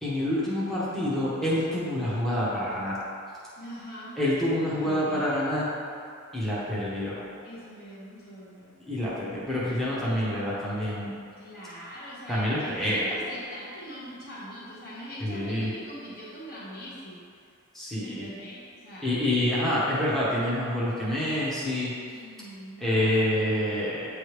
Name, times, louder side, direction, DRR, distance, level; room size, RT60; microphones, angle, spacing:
voice 1, 0.0-3.0 4.2-5.7 6.3-7.2 8.9-11.1 12.3-13.1 15.2-15.7 17.7-18.3 19.0-21.9 22.8-24.2, left 1 dB, ahead, -9 dB, 1.0 m, -27 dB
voice 2, 3.6-4.2 4.7-5.2 7.4-8.7 11.4-17.2 18.0-19.6 22.1-22.9, equal, 45° left, -8 dB, 1.2 m, -42 dB
9.0 x 3.3 x 3.1 m, 2.3 s
head